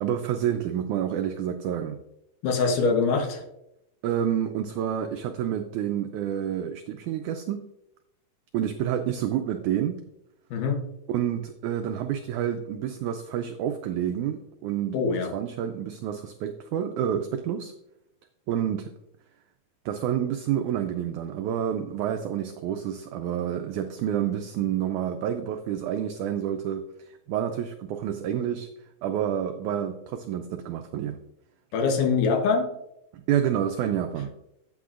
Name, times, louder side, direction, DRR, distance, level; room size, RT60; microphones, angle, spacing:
voice 1, 0.0-2.0 4.0-7.6 8.5-10.0 11.1-17.7 18.5-18.9 19.9-28.7 29.0-31.2 33.1-34.3, right 10 dB, 85° right, 6 dB, 1.7 m, -29 dB
voice 2, 2.4-3.4 10.5-10.8 14.9-15.3 31.7-32.7, left 4 dB, 70° left, 4 dB, 2.5 m, -23 dB
12.0 x 8.5 x 2.5 m, 0.84 s
omnidirectional pair, 4.1 m